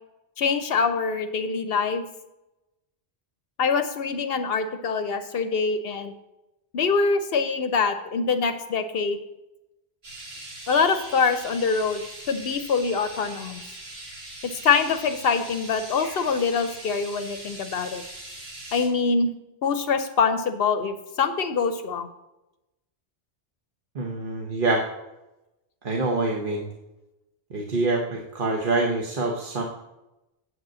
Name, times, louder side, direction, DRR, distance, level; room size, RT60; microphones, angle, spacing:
voice 1, 0.4-2.1 3.6-6.1 6.7-9.2 10.7-12.0 12.3-13.6 14.6-18.0 18.7-19.3 19.6-22.1, left 5 dB, 70° left, 9 dB, 0.8 m, -24 dB
sound 1, 10.0-18.9, right 1 dB, 75° right, 2.5 m, -41 dB
voice 2, 23.9-24.9 25.8-26.7 27.5-29.6, right 2 dB, 55° right, 0 dB, 1.1 m, -25 dB
7.8 x 5.1 x 7.5 m, 0.96 s
omnidirectional pair, 1.1 m